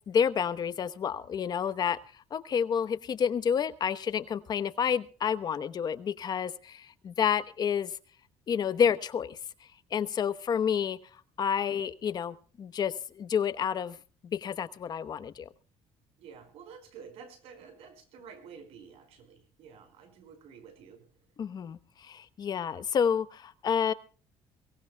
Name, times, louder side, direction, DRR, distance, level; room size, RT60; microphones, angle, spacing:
voice 1, 0.1-2.0 2.3-7.9 8.5-9.4 9.9-11.0 11.4-14.0 14.3-15.5 21.4-23.9, left 7 dB, 40° left, 12 dB, 1.0 m, -29 dB
voice 2, 16.2-21.1, right 6 dB, 70° right, 8 dB, 5.1 m, -50 dB
23.5 x 18.0 x 2.3 m, 0.38 s
cardioid pair, 140°, 11 cm